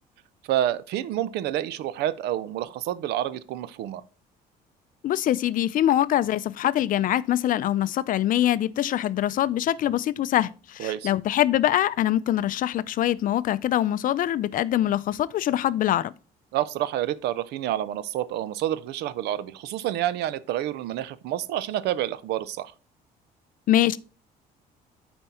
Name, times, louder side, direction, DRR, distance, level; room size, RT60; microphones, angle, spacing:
voice 1, 0.4-4.0 10.8-11.1 16.5-22.7, right 12 dB, 80° right, 0.6 m, -28 dB
voice 2, 5.0-16.1 23.7-24.0, left 12 dB, 55° left, 0.4 m, -24 dB
8.9 x 4.4 x 4.3 m
cardioid pair, 110°, 17 cm